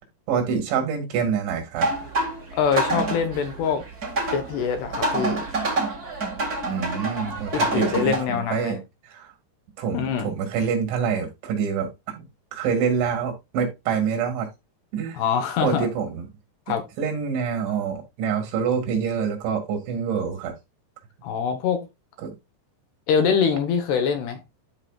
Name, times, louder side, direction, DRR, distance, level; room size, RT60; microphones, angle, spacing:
voice 1, 0.3-1.9 6.7-8.8 9.1-9.3 9.8-11.9 12.2-12.3 12.5-14.5 14.9-15.2 15.6-16.3 17.0-20.5 22.2-22.3, right 6 dB, 85° right, 4.5 m, -26 dB
sound 1, 1.8-8.2, right 2 dB, 40° right, 1.3 m, -27 dB
voice 2, 2.6-3.8 4.3-5.4 7.5-8.8 9.9-10.3 15.1-15.9 16.7-16.8 21.2-21.8 23.1-24.4, left 7 dB, 70° left, 3.2 m, -24 dB
12.5 x 4.9 x 2.4 m
omnidirectional pair, 5.1 m